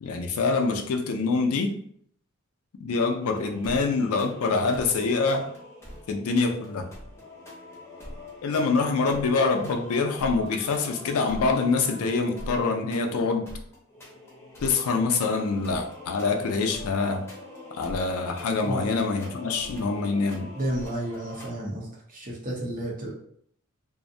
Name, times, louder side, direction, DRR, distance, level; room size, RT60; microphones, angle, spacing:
voice 1, 0.0-1.8 2.8-5.5 6.1-6.9 8.4-13.5 14.6-17.3 17.7-20.5, left 4 dB, 70° left, 4 dB, 0.4 m, -25 dB
sound 1, 3.2-21.5, left 1 dB, 10° left, 0.7 m, -43 dB
voice 2, 20.6-23.1, right 1 dB, 40° right, -2 dB, 0.7 m, -32 dB
2.5 x 2.0 x 2.6 m, 0.65 s
head